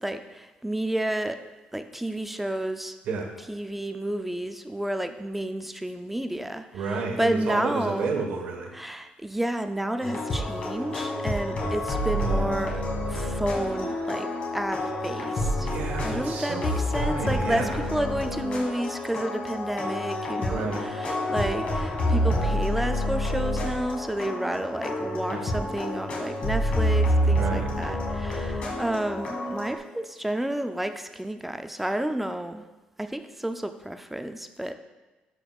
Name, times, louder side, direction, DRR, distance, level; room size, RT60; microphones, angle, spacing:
voice 1, 0.0-1.4 1.7-2.9 3.5-8.2 8.7-15.7 16.0-32.7 33.0-34.7, right 1 dB, 5° right, 8 dB, 0.3 m, -31 dB
voice 2, 6.7-8.7 15.6-16.7 17.0-17.8 20.5-20.8 25.3-25.5 27.3-27.7, right 4 dB, 70° right, 2 dB, 1.3 m, -31 dB
sound 1, 10.0-29.8, left 1 dB, 50° left, 1.6 m, -28 dB
11.5 x 5.3 x 2.3 m, 1.2 s
cardioid pair, 150°, 3 cm